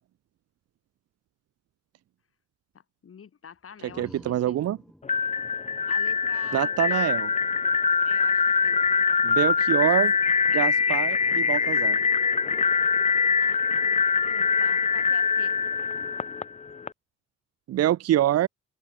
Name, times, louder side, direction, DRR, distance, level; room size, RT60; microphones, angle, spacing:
voice 1, 2.7-4.6 5.9-7.0 8.1-9.0 13.4-13.6 14.2-15.6, left 7 dB, 45° left, 5.7 m, -46 dB
sound 1, 3.5-7.2, equal, ahead, 4.0 m, -53 dB
voice 2, 4.0-4.8 6.5-7.3 9.2-10.1 10.5-12.0 17.7-18.5, right 12 dB, 55° right, 0.6 m, -25 dB
sound 2, 5.0-16.9, left 5 dB, 25° left, 0.6 m, -23 dB
open air
cardioid pair, 90°, 30 cm